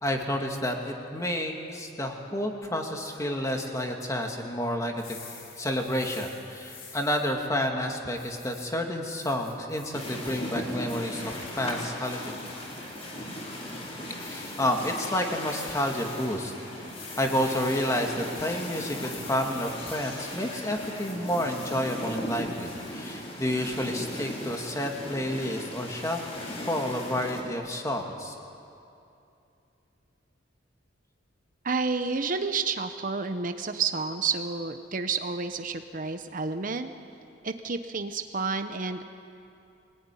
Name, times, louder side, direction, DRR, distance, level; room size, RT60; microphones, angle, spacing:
voice 1, 0.0-5.2 5.6-12.2 14.2-16.5 17.2-26.2 26.7-28.3, left 1 dB, 15° left, 2 dB, 2.2 m, -30 dB
sound 1, 4.9-7.3 8.2-8.7 9.2-10.4 10.9-11.4 12.0-12.4 14.2-15.1 15.6-16.3 16.9-19.8 20.2-22.9, left 5 dB, 90° left, 5.4 m, -48 dB
sound 2, 9.9-27.4, left 1 dB, 30° left, 4.2 m, -38 dB
voice 2, 31.6-36.9 37.4-39.0, right 4 dB, 45° right, 8 dB, 0.9 m, -30 dB
23.5 x 19.0 x 9.9 m, 2.7 s
head